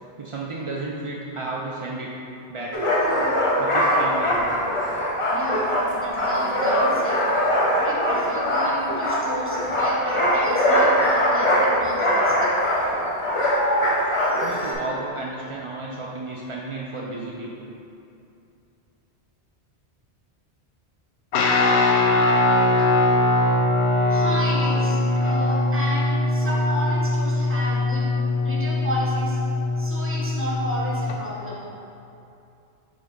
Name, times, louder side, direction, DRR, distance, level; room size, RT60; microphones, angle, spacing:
voice 1, 0.2-2.1 2.5-2.9 3.6-4.5 14.4-17.7 22.7-22.8, right 2 dB, 55° right, -4 dB, 0.3 m, -33 dB
sound 1, 2.7-14.7, equal, 30° left, 0.8 m, -22 dB
voice 2, 5.3-5.6 5.9-7.3 7.8-12.5 22.6-22.8 24.1-28.1 28.4-29.4 29.8-31.6, equal, 10° right, -6 dB, 0.9 m, -32 dB
Guitar, 21.3-31.2, left 2 dB, 75° left, 0.9 m, -21 dB
5.3 x 3.5 x 5.2 m, 2.7 s
omnidirectional pair, 1.1 m